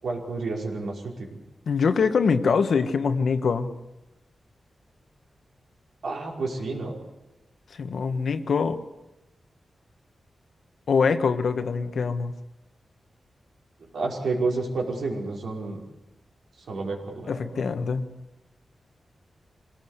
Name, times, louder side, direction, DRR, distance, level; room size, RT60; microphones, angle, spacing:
voice 1, 0.0-1.4 6.0-7.0 13.9-15.8 16.7-17.6, right 3 dB, 85° right, -1 dB, 5.4 m, -30 dB
voice 2, 1.7-3.7 7.8-8.8 10.9-12.3 17.3-18.1, left 5 dB, 70° left, 8 dB, 1.5 m, -24 dB
25.5 x 18.0 x 8.2 m, 1.0 s
wide cardioid pair, 140°, 0 cm